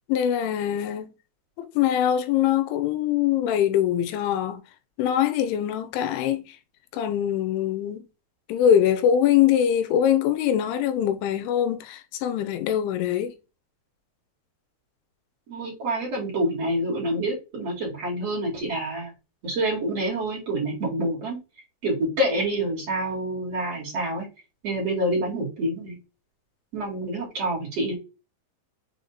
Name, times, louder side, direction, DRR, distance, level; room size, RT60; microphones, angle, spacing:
voice 1, 0.1-1.1 1.6-4.6 5.0-6.6 6.9-8.1 8.5-13.3, left 10 dB, 80° left, 3.1 m, -23 dB
voice 2, 15.5-19.1 19.4-21.4 21.8-24.3 24.6-26.0 26.7-28.0, right 1 dB, 40° right, 3.1 m, -27 dB
6.9 x 3.6 x 3.9 m
omnidirectional pair, 5.4 m